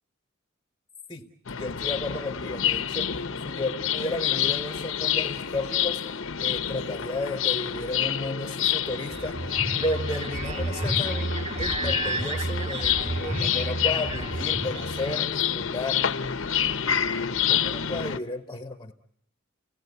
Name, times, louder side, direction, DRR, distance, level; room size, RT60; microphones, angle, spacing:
sound 1, 1.5-18.2, left 9 dB, 75° left, 1.0 m, -28 dB
voice 1, 1.6-3.1 3.4-16.1 17.2-18.9, left 2 dB, 15° left, 6 dB, 0.9 m, -33 dB
sound 2, 8.9-15.5, right 2 dB, 35° right, 2.8 m, -31 dB
29.5 x 18.0 x 9.3 m, 0.73 s
head